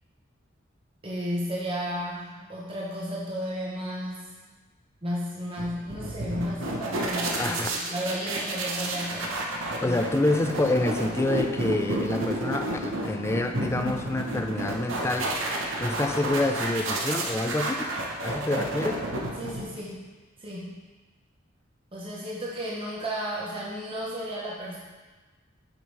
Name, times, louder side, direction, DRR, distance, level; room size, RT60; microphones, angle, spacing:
voice 1, 1.0-4.3 5.0-9.4 9.8-10.0 18.5-18.7 19.4-20.0 20.4-20.8 21.9-24.8, equal, 25° right, -5 dB, 0.8 m, -33 dB
sound 1, 5.6-19.9, right 1 dB, 80° right, 0.9 m, -31 dB
voice 2, 7.4-7.7 9.8-15.3 15.8-17.8 18.2-19.0, left 2 dB, 15° left, 6 dB, 0.3 m, -27 dB
7.3 x 5.2 x 3.2 m, 1.3 s
head